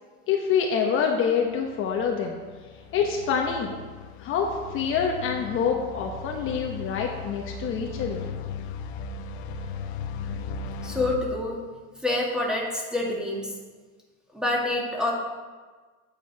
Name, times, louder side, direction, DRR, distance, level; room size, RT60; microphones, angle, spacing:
voice 1, 0.3-2.4 2.9-3.7 4.2-8.3, left 6 dB, 40° left, 1 dB, 1.1 m, -26 dB
sound 1, 1.5-11.2, left 4 dB, 80° left, 1.1 m, -37 dB
voice 2, 10.8-11.6 12.0-13.5 14.3-15.1, left 2 dB, ahead, -2 dB, 1.8 m, -27 dB
8.8 x 7.5 x 4.7 m, 1.4 s
supercardioid pair, 135°, 33 cm